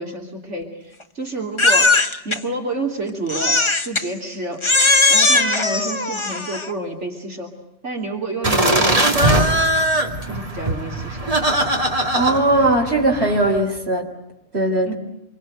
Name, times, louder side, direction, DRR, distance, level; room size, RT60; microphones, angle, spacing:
voice 1, 0.0-1.9 2.2-4.6 5.1-7.5 7.8-9.6 10.3-11.4 14.8-14.9, right 2 dB, 80° right, 2 dB, 3.5 m, -29 dB
Crying sobbing, 1.6-2.4 3.3-4.1 4.6-6.7, left 3 dB, 25° left, 1.3 m, -18 dB
sound 1, 8.4-13.6, right 1 dB, 30° right, 2.6 m, -20 dB
voice 2, 12.1-14.1 14.5-14.9, right 2 dB, 65° right, 2 dB, 3.8 m, -19 dB
27.0 x 24.0 x 8.0 m, 0.84 s
omnidirectional pair, 1.2 m